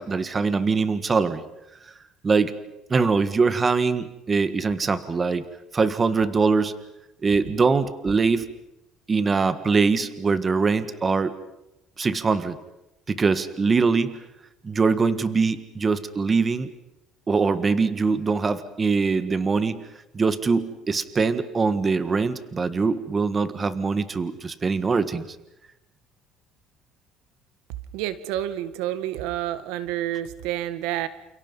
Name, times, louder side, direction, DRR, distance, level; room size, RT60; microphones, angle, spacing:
voice 1, 0.0-1.4 2.2-2.5 2.9-5.4 5.7-6.7 7.2-8.5 9.1-11.3 12.0-12.6 13.1-14.2 14.6-16.7 17.3-19.8 20.1-25.2, right 4 dB, 25° right, 12 dB, 1.6 m, -22 dB
voice 2, 27.9-31.1, right 12 dB, 90° right, 13 dB, 1.8 m, -29 dB
29.5 x 29.0 x 5.6 m, 0.90 s
cardioid pair, 130°, 0 cm